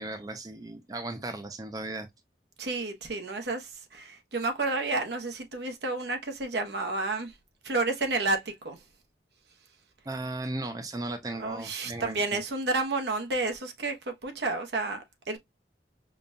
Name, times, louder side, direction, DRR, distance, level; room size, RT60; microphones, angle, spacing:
voice 1, 0.0-2.1 10.1-12.4, right 2 dB, 20° right, 0.4 m, -36 dB
voice 2, 2.6-7.3 7.6-8.8 11.4-15.4, right 3 dB, 70° right, 0.8 m, -31 dB
5.2 x 2.2 x 2.5 m
head